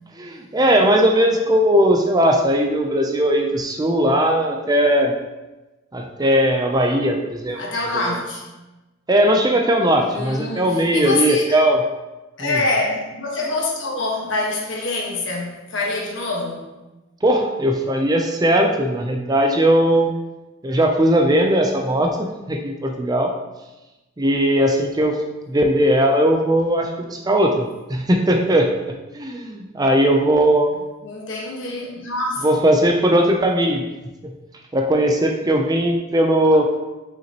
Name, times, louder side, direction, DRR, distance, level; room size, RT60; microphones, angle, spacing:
voice 1, 0.2-5.1 5.9-7.6 9.1-11.8 12.4-12.6 17.2-20.1 20.6-23.3 24.2-25.2 25.5-30.7 32.4-33.9 34.2-34.3 34.7-36.7, right 1 dB, 20° right, 2 dB, 0.5 m, -18 dB
voice 2, 7.6-8.4 10.0-11.6 12.4-16.7 31.0-32.4, left 2 dB, 65° left, -2 dB, 1.4 m, -25 dB
5.8 x 5.7 x 2.9 m, 1.1 s
head